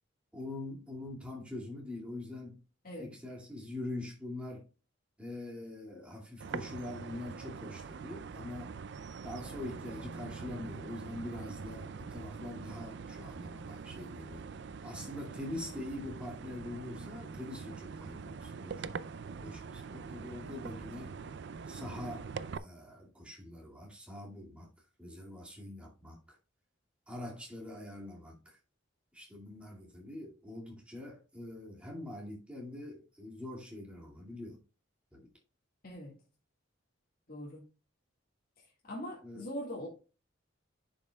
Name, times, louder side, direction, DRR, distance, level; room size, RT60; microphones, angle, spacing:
voice 1, 0.3-2.6 3.0-4.7 5.2-8.8 9.2-14.5 14.8-19.0 19.4-21.2 21.7-22.3 22.6-24.7 25.0-26.4 27.1-28.6 29.1-34.6 35.1-35.3 39.2-39.4, left 1 dB, 5° right, 2.2 m, -44 dB
sound 1, 6.4-22.6, right 5 dB, 55° right, 0.4 m, -44 dB
voice 2, 35.8-36.2 37.3-37.6 38.6-39.9, equal, 45° left, 1.8 m, -42 dB
10.5 x 5.4 x 2.3 m
head